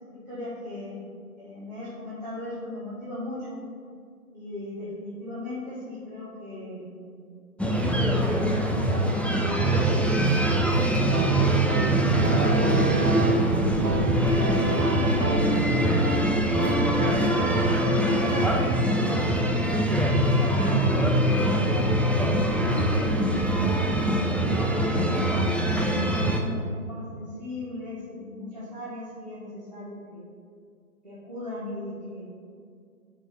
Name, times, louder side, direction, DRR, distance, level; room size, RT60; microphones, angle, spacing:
voice 1, 0.1-0.9 1.4-3.6 4.3-7.3 7.9-9.8 11.6-12.9 13.4-14.1 14.6-17.5 18.0-25.0 25.6-30.3 31.0-32.2, left 1 dB, 30° right, -11 dB, 1.1 m, -38 dB
sound 1, 7.6-26.4, right 1 dB, 5° left, 0.3 m, -23 dB
sound 2, 11.1-19.7, right 2 dB, 80° right, 1.3 m, -30 dB
9.1 x 4.8 x 3.3 m, 2.2 s
hypercardioid pair, 175°, 45 cm